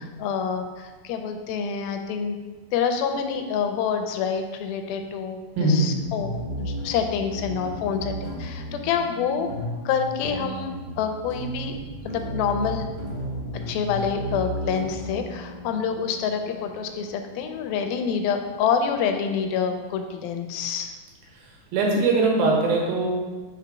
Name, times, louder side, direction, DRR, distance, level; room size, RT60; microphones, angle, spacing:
voice 1, 0.0-2.4 2.7-9.5 9.9-11.8 12.1-12.9 13.7-21.0, left 6 dB, 85° left, 6 dB, 2.4 m, -27 dB
voice 2, 5.6-5.9 21.7-23.1, right 3 dB, 80° right, -2 dB, 3.0 m, -21 dB
sound 1, 6.0-18.8, equal, 45° right, 1.6 m, -35 dB
5.1 x 4.6 x 5.0 m, 1.3 s
omnidirectional pair, 4.3 m